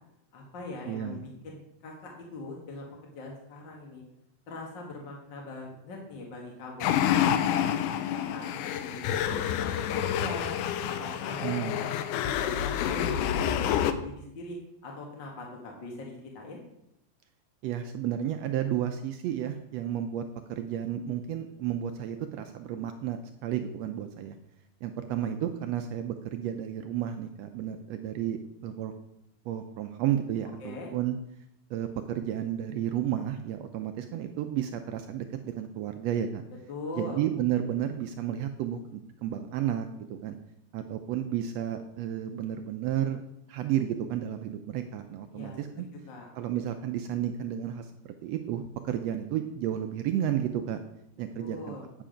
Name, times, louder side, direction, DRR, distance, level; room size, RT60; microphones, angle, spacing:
voice 1, 0.3-2.9 3.1-4.0 4.5-6.9 7.2-10.5 10.8-14.6 14.8-16.6 30.6-30.9 36.7-37.2 45.3-45.6 46.1-46.3 51.4-51.9, left 2 dB, 45° left, -1 dB, 1.7 m, -41 dB
voice 2, 0.9-1.2 11.4-11.8 17.6-20.2 20.5-24.4 24.8-28.9 29.4-31.2 31.7-36.4 37.0-40.4 40.7-43.2 43.5-45.9 46.3-50.8 51.2-51.8, right 10 dB, 90° right, 7 dB, 1.4 m, -32 dB
sound 1, 6.8-13.9, left 10 dB, 80° left, 2.1 m, -28 dB
9.2 x 7.6 x 5.0 m, 0.81 s
omnidirectional pair, 3.6 m